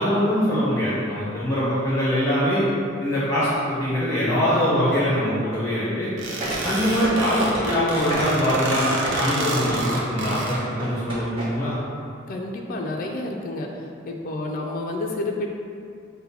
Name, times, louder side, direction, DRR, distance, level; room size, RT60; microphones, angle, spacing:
voice 1, 0.0-2.6 3.0-6.1 6.6-11.7, equal, 15° left, -9 dB, 0.8 m, -23 dB
sound 1, 6.2-10.5, right 2 dB, 60° right, 0.6 m, -29 dB
sound 2, 6.4-11.4 11.7-11.8, right 1 dB, 25° right, 1.1 m, -29 dB
voice 2, 12.3-13.7 14.1-15.5, left 2 dB, 45° left, 1 dB, 0.3 m, -29 dB
5.5 x 2.1 x 4.1 m, 2.5 s
head